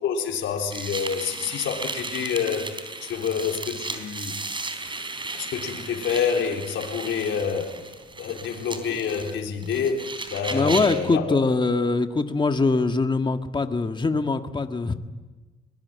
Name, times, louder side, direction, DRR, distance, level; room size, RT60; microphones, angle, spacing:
voice 1, 0.0-2.7 3.0-4.4 5.3-7.8 8.2-11.4, left 6 dB, 75° left, 4.0 m, -28 dB
sound 1, 0.7-11.1, right 3 dB, 25° right, 3.8 m, -35 dB
voice 2, 10.5-14.9, left 3 dB, 25° left, 1.7 m, -23 dB
22.5 x 21.5 x 9.4 m
cardioid pair, 90°, 20 cm